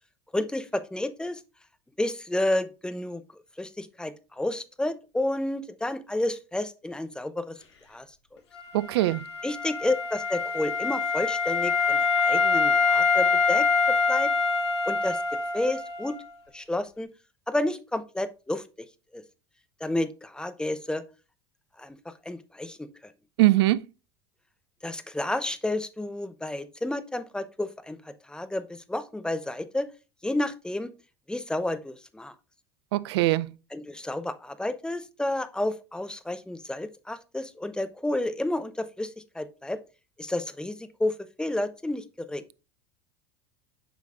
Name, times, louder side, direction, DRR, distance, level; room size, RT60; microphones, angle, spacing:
voice 1, 0.3-1.4 2.0-7.6 7.9-8.1 8.3-8.4 9.4-14.3 14.9-15.2 15.5-16.2 16.5-17.1 17.5-18.9 19.1-19.2 19.8-21.0 21.8-23.1 24.8-29.9 30.2-30.9 31.3-32.3 33.7-39.8 40.2-42.4, left 1 dB, 5° left, 0.7 m, -31 dB
Wind instrument woodwind instrument, 8.5-16.3, left 4 dB, 80° left, 1.3 m, -25 dB
voice 2, 8.7-9.2 23.4-23.8 32.9-33.5, right 17 dB, 70° right, 0.4 m, -21 dB
7.7 x 5.1 x 2.5 m
hypercardioid pair, 75°, 14 cm